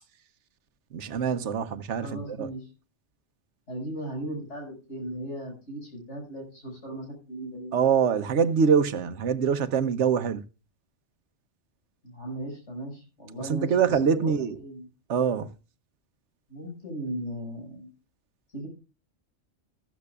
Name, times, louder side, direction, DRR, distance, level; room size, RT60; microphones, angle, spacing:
voice 1, 0.9-2.5 7.7-10.4 13.4-14.6 15.1-15.5, right 7 dB, 85° right, 1.2 m, -24 dB
voice 2, 2.0-2.7 3.7-7.8 12.0-14.8 16.5-17.9 18.5-18.7, right 1 dB, 90° left, 6.4 m, -37 dB
14.5 x 13.5 x 2.4 m
omnidirectional pair, 1.2 m